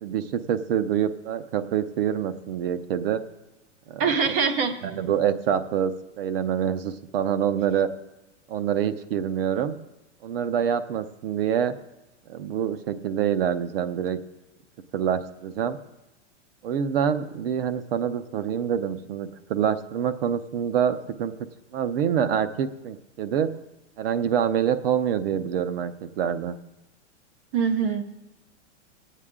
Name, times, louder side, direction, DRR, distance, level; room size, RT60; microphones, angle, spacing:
voice 1, 0.0-3.2 3.9-4.1 4.8-7.9 8.5-9.7 10.2-11.7 12.3-14.2 14.9-15.8 16.6-21.3 21.7-23.5 24.0-26.6, right 8 dB, 55° right, 11 dB, 0.8 m, -26 dB
voice 2, 4.0-4.7 27.5-28.0, right 6 dB, 15° right, 9 dB, 0.3 m, -23 dB
18.5 x 8.4 x 3.7 m, 0.97 s
supercardioid pair, 155°, 36 cm